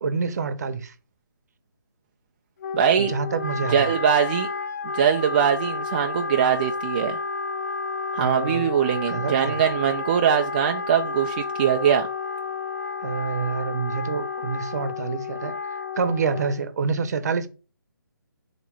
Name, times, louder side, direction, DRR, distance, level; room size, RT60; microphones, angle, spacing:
voice 1, 0.0-0.9 3.0-3.9 8.2-9.6 13.0-15.5 16.0-17.5, right 5 dB, 45° right, 0.8 m, -27 dB
Wind instrument woodwind instrument, 2.6-16.7, left 4 dB, 45° left, 0.7 m, -31 dB
voice 2, 2.7-3.1 3.7-4.5 4.9-7.2 8.1-12.1, right 8 dB, 25° right, 0.4 m, -22 dB
7.2 x 3.0 x 5.2 m
figure-of-eight pair, 145°, 12 cm